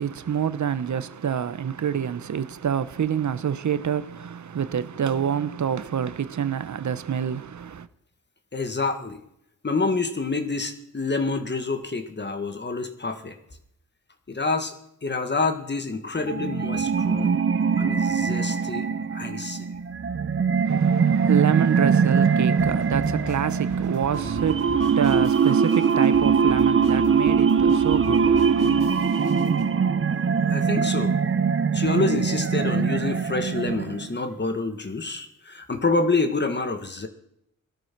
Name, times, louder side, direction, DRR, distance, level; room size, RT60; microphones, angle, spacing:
voice 1, 0.0-7.9 20.6-28.6, right 8 dB, 60° right, 1.0 m, -27 dB
voice 2, 8.5-9.2 9.6-13.4 14.3-14.7 15.0-17.4 17.8-19.7 30.5-31.1 31.7-37.1, left 3 dB, 35° left, 1.8 m, -27 dB
sound 1, 16.2-34.2, right 6 dB, 40° right, 0.8 m, -22 dB
sound 2, 22.6-29.7, left 4 dB, 75° left, 3.9 m, -39 dB
18.5 x 12.5 x 6.1 m
wide cardioid pair, 95°, 32 cm